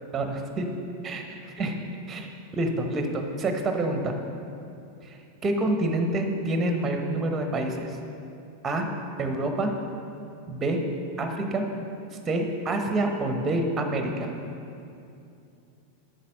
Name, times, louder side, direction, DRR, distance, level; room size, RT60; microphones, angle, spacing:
voice 1, 0.1-0.7 1.0-1.7 2.1-2.3 2.6-4.1 5.0-7.9 8.6-8.9 9.2-9.7 10.5-10.8 11.2-11.7 12.3-14.3, right 2 dB, 20° right, 4 dB, 1.0 m, -27 dB
8.6 x 6.6 x 5.4 m, 2.6 s
figure-of-eight pair, 90°, 0 cm